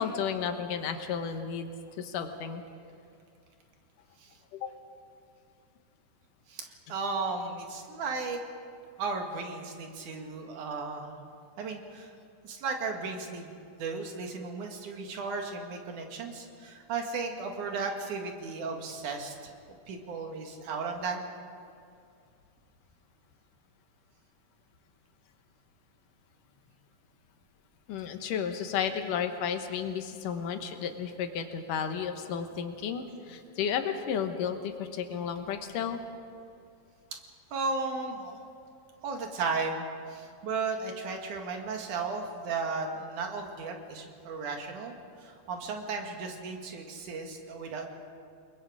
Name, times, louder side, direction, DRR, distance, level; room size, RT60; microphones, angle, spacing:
voice 1, 0.0-1.7 2.0-2.6 4.5-4.7 27.9-36.0, left 7 dB, 85° left, 6 dB, 2.9 m, -33 dB
voice 2, 6.5-8.4 9.0-11.2 11.6-12.1 12.4-19.5 19.9-21.3 37.5-38.4 39.0-44.9 45.2-47.9, right 4 dB, 70° right, 3 dB, 3.3 m, -35 dB
29.0 x 21.5 x 5.0 m, 2.4 s
omnidirectional pair, 3.6 m